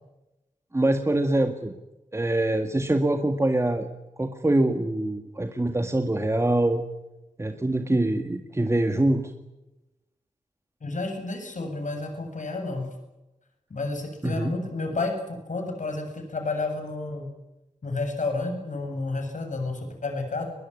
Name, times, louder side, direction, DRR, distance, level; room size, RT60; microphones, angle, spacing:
voice 1, 0.7-1.7 2.1-3.9 4.2-6.8 7.4-9.2 14.2-14.5, right 1 dB, 20° right, 6 dB, 2.0 m, -24 dB
voice 2, 10.8-12.9 13.7-17.3 17.8-20.5, left 3 dB, 70° left, 4 dB, 7.9 m, -31 dB
22.5 x 22.0 x 9.7 m, 0.96 s
wide cardioid pair, 90°, 13 cm